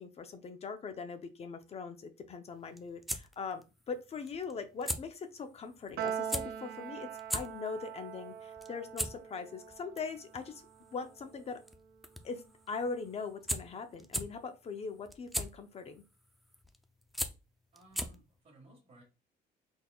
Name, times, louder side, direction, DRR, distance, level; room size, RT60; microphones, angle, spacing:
voice 1, 0.0-10.6 10.9-11.6 12.2-16.0, left 5 dB, 40° left, 8 dB, 0.7 m, -41 dB
sound 1, 2.5-18.4, equal, ahead, 0.4 m, -41 dB
Piano, 6.0-12.5, right 8 dB, 70° right, 0.5 m, -43 dB
voice 2, 17.7-19.0, right 2 dB, 45° right, -4 dB, 1.5 m, -59 dB
4.1 x 3.5 x 2.3 m, 0.29 s
cardioid pair, 110°, 17 cm